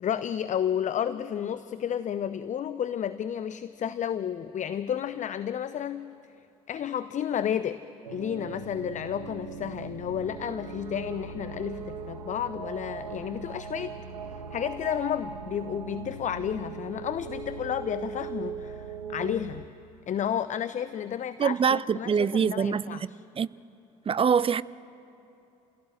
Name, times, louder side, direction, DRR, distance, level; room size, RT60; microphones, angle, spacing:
voice 1, 0.0-6.2 6.7-7.8 8.1-13.9 14.3-19.7 20.1-23.2, left 9 dB, 40° left, 0.7 m, -32 dB
sound 1, 8.0-19.6, right 6 dB, 85° right, 0.8 m, -39 dB
voice 2, 21.4-23.0 23.4-23.5 24.1-24.6, right 7 dB, 30° right, 0.5 m, -24 dB
28.5 x 16.5 x 7.6 m
figure-of-eight pair, 50°, 20 cm